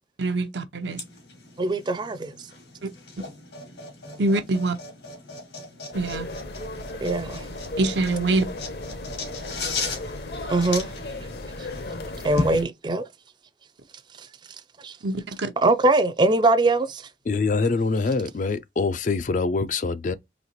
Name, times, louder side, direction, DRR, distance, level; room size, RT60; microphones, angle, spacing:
voice 1, 0.2-1.0 2.8-2.9 3.2-3.3 4.2-4.8 5.9-6.3 7.8-8.5 15.0-15.5, right 2 dB, 80° right, 0.7 m, -24 dB
sound 1, 0.9-12.6, left 3 dB, 85° left, 2.1 m, -36 dB
voice 2, 1.6-2.3 4.1-4.2 7.0-7.5 10.5-10.9 12.2-13.0 14.8-15.0 15.6-17.0, right 2 dB, 25° right, 0.4 m, -22 dB
sound 2, 5.9-12.6, left 2 dB, 65° left, 0.8 m, -35 dB
voice 3, 17.2-20.2, left 4 dB, 45° left, 0.4 m, -24 dB
4.0 x 2.8 x 2.9 m
head